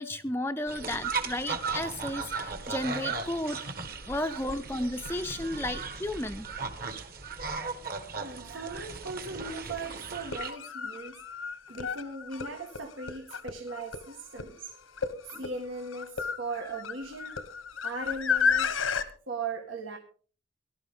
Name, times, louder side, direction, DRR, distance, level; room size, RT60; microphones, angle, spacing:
voice 1, 0.0-3.6 4.1-6.5 16.5-16.7, left 1 dB, 10° left, 6 dB, 0.5 m, -33 dB
sound 1, 0.7-10.5, right 4 dB, 45° right, 1.6 m, -37 dB
voice 2, 8.1-11.2 11.7-14.7 15.3-17.4 17.8-18.8 19.3-20.0, right 3 dB, 80° right, 3 dB, 1.9 m, -38 dB
sound 2, 9.0-9.1 10.1-19.1, left 6 dB, 90° left, 1.3 m, -32 dB
18.5 x 12.0 x 3.8 m, 0.41 s
head